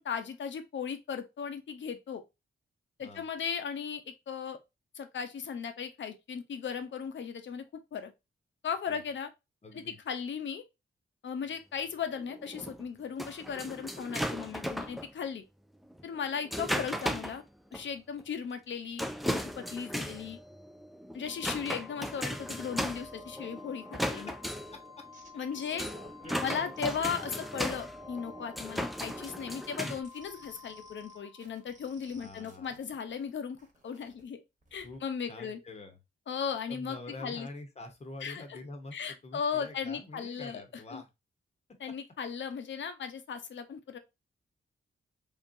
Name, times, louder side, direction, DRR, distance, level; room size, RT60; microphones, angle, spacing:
voice 1, 0.0-2.2 3.0-4.6 4.9-7.6 7.9-8.1 8.6-9.3 9.7-10.6 11.2-15.4 16.0-17.4 17.7-20.4 21.1-24.3 25.3-25.8 26.4-33.6 33.8-34.4 34.7-35.6 36.3-37.5 38.2-38.6 38.9-40.6 40.9-41.0 41.8-44.0, left 6 dB, 65° left, 0.7 m, -37 dB
voice 2, 9.6-10.0 24.1-24.3 24.7-24.8 25.3-25.4 25.7-26.7 32.1-32.8 34.8-35.0 35.3-36.0 36.7-41.1 42.5-42.6, left 2 dB, 30° left, 0.9 m, -46 dB
pinball-full game, 12.1-15.1 15.9-17.4 17.7-17.8 18.2-18.3 19.0-30.0, equal, ahead, 0.3 m, -37 dB
Organ, 21.3-32.0, left 6 dB, 20° right, 0.9 m, -52 dB
sound 1, 24.6-27.5 28.0-28.6 29.0-33.3 33.6-34.2 34.6-35.0, right 2 dB, 35° right, 1.2 m, -56 dB
3.8 x 3.5 x 2.6 m
wide cardioid pair, 170°, 21 cm